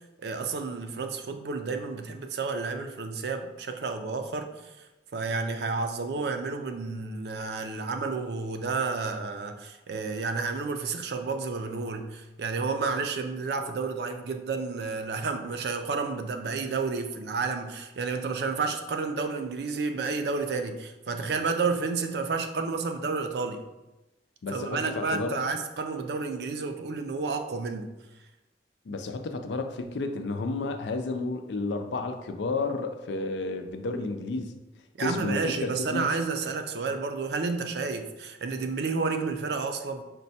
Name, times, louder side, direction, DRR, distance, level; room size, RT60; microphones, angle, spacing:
voice 1, 0.2-4.7 5.1-23.6 24.5-27.9 35.0-40.0, right 4 dB, 65° right, 6 dB, 0.4 m, -31 dB
voice 2, 24.4-25.4 28.9-34.6 35.0-36.1, left 3 dB, 80° left, 7 dB, 0.4 m, -31 dB
5.2 x 2.2 x 4.1 m, 1.0 s
head